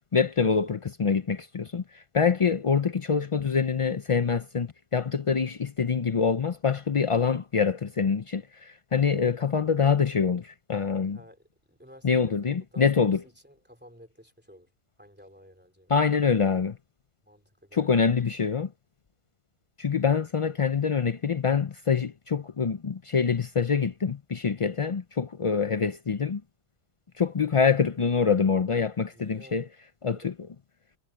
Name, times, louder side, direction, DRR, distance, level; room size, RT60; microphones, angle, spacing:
voice 1, 0.0-11.2 12.0-13.2 15.9-16.8 17.7-18.7 19.8-26.4 27.2-29.6 30.0-30.3, left 6 dB, 60° left, 0.3 m, -25 dB
voice 2, 11.1-14.7 15.0-16.1 17.2-18.1 29.1-29.6 30.1-30.4, equal, 5° right, 3.2 m, -53 dB
omnidirectional pair, 1.4 m